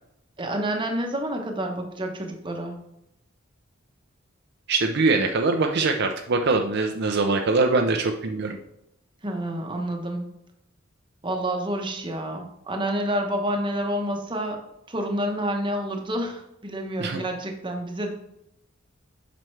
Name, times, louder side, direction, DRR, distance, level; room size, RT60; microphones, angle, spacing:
voice 1, 0.4-2.8 9.2-10.3 11.2-14.6 14.9-18.1, right 1 dB, 25° right, 3 dB, 1.0 m, -28 dB
voice 2, 4.7-8.6 17.0-17.2, right 3 dB, 55° right, 4 dB, 0.5 m, -23 dB
7.6 x 5.1 x 3.2 m, 0.83 s
head